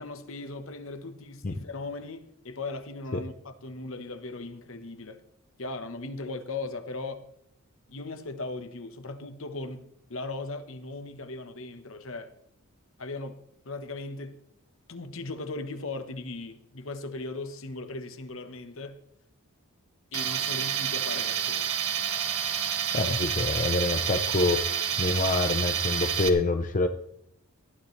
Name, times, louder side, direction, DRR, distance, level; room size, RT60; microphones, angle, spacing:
voice 1, 0.0-5.2 5.6-7.3 7.9-12.3 13.0-13.4 13.6-14.4 14.9-19.0 20.1-21.7, left 2 dB, 60° left, 1.2 m, -38 dB
Tools, 20.1-26.3, right 8 dB, 80° right, 1.6 m, -29 dB
voice 2, 22.9-24.6 25.0-26.9, left 2 dB, 35° left, 0.7 m, -26 dB
18.5 x 12.5 x 3.3 m
head